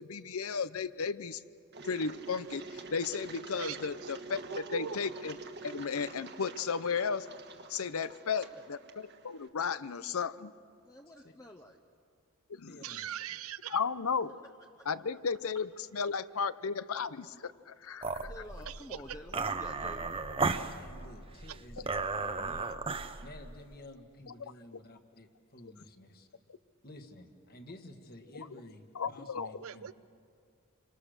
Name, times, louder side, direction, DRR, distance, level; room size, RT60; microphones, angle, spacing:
voice 1, 0.0-1.4 1.8-4.4 4.7-5.4 5.6-7.3 7.7-10.5 12.5-12.8 13.7-14.4 14.9-18.3 28.3-28.4 29.0-29.6, left 5 dB, 80° left, 15 dB, 0.7 m, -34 dB
Engine, 1.7-9.5, right 3 dB, 50° right, 1.5 m, -47 dB
voice 2, 3.6-4.1 4.5-5.0 12.8-13.8 18.7-19.2 29.6-29.9, right 8 dB, 75° right, 15 dB, 0.6 m, -41 dB
voice 3, 8.0-8.7 10.8-11.8 14.8-14.9 18.2-20.1, left 1 dB, 15° left, 2 dB, 0.9 m, -50 dB
voice 4, 12.7-13.0 20.7-21.9 22.2-22.7 23.2-26.3 26.8-29.9, left 1 dB, 45° left, 5 dB, 1.9 m, -52 dB
sound 1, 18.0-23.7, right 4 dB, 25° right, 0.7 m, -35 dB
28.0 x 25.0 x 6.6 m, 2.3 s
head